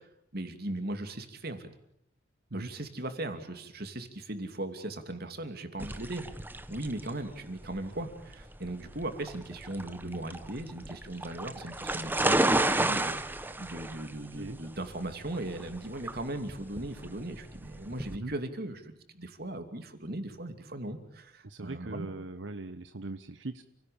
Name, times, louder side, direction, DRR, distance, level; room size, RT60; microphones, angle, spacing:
voice 1, 0.3-1.7 2.5-6.2 6.7-22.1, right 1 dB, 55° right, 7 dB, 2.8 m, -38 dB
sound 1, 5.8-18.2, right 2 dB, 10° right, 1.0 m, -32 dB
voice 2, 21.4-23.6, right 2 dB, 70° right, 10 dB, 1.0 m, -40 dB
29.5 x 17.5 x 8.7 m, 0.74 s
head